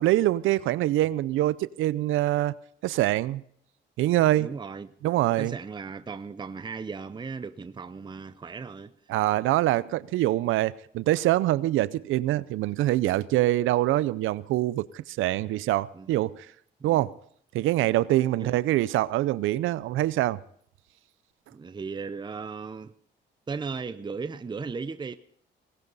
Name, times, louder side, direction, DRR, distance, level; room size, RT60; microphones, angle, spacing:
voice 1, 0.0-2.6 2.8-3.4 4.0-4.5 5.0-5.6 9.1-16.5 16.8-17.1 17.5-20.4, right 15 dB, 85° right, 0.6 m, -24 dB
voice 2, 4.4-4.9 5.4-8.9 15.9-16.1 16.8-17.1 18.3-18.6 21.5-22.9 23.5-25.2, right 5 dB, 20° right, 0.7 m, -36 dB
18.0 x 17.5 x 4.0 m
cardioid pair, 90°, 20 cm